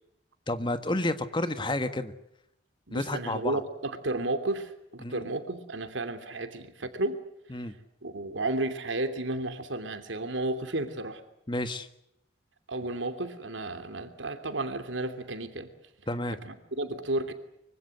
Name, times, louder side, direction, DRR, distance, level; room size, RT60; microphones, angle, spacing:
voice 1, 0.5-2.1 2.9-3.6 5.0-5.2 7.5-7.7 11.5-11.9 16.1-16.4, left 1 dB, 25° left, 10 dB, 1.6 m, -30 dB
voice 2, 2.9-7.2 8.0-11.2 12.7-15.7 16.4-17.3, right 2 dB, 85° right, 8 dB, 3.0 m, -32 dB
25.0 x 24.5 x 7.9 m, 0.77 s
head